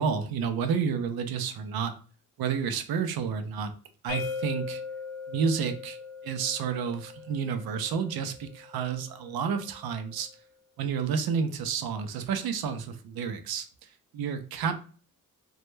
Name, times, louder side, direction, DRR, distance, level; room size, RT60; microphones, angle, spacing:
voice 1, 0.0-1.9 2.4-3.7 4.0-4.8 5.3-6.0 6.2-10.3 10.8-13.7 14.1-14.7, right 6 dB, 80° right, 8 dB, 0.5 m, -30 dB
sound 1, 4.1-9.9, left 6 dB, 65° left, 0.8 m, -40 dB
2.2 x 2.0 x 3.0 m, 0.40 s
cardioid pair, 50°, 36 cm